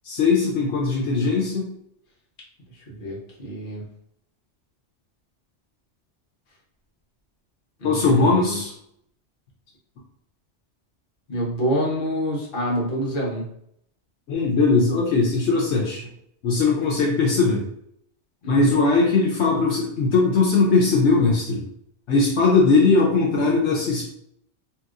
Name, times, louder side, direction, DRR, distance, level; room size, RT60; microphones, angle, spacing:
voice 1, 0.0-1.7 7.8-8.7 14.3-16.0 16.4-17.6 18.5-21.6 22.1-24.1, left 3 dB, 75° left, -3 dB, 0.9 m, -19 dB
voice 2, 2.9-3.8 7.8-8.6 11.3-13.4 18.4-18.8, equal, 50° left, -4 dB, 1.0 m, -27 dB
2.9 x 2.8 x 2.4 m, 0.73 s
omnidirectional pair, 1.2 m